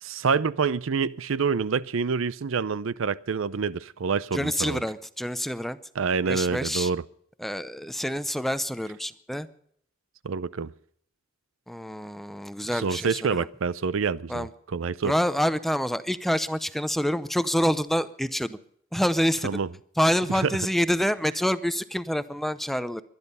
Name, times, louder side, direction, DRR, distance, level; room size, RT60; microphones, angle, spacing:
voice 1, 0.0-4.8 6.0-7.0 10.2-10.7 12.7-15.1 19.4-19.7 20.3-20.6, right 5 dB, 80° right, 0.5 m, -27 dB
voice 2, 4.3-5.8 6.3-6.9 7.4-9.5 11.7-13.5 14.3-14.5 15.0-18.6 18.9-19.5 20.0-23.0, equal, ahead, 0.6 m, -27 dB
23.0 x 10.5 x 5.5 m
head